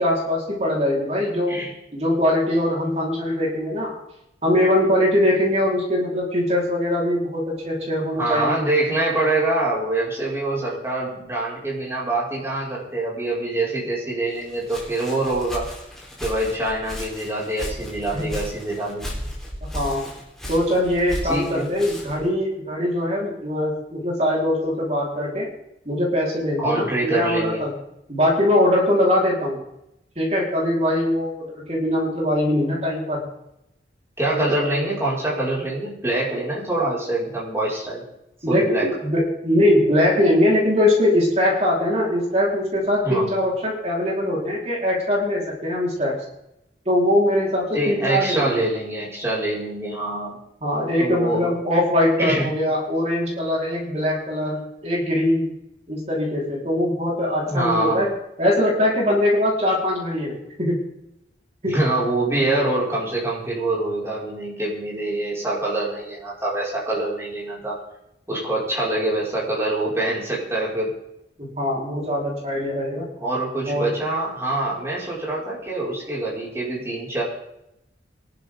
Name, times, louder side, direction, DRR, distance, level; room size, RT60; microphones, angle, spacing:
voice 1, 0.0-1.6 1.9-4.0 4.4-8.6 18.1-18.3 19.7-20.1 20.5-25.5 25.8-27.7 28.1-29.6 30.2-33.2 34.3-34.7 38.4-46.1 46.8-48.6 50.6-55.5 55.9-60.8 61.6-61.8 62.4-62.5 71.4-73.1 73.7-73.9, left 1 dB, 35° right, -3 dB, 4.8 m, -22 dB
voice 2, 8.2-15.7 16.2-19.1 21.2-21.7 26.6-27.6 34.2-38.0 38.5-38.9 43.0-43.3 47.7-50.4 51.0-51.5 52.2-52.5 57.5-58.0 61.7-67.8 68.3-70.9 73.2-77.2, right 2 dB, 15° right, -6 dB, 6.0 m, -25 dB
Walk footsteps, 14.3-22.3, equal, 5° left, 4.3 m, -35 dB
22.5 x 12.0 x 4.0 m, 0.84 s
head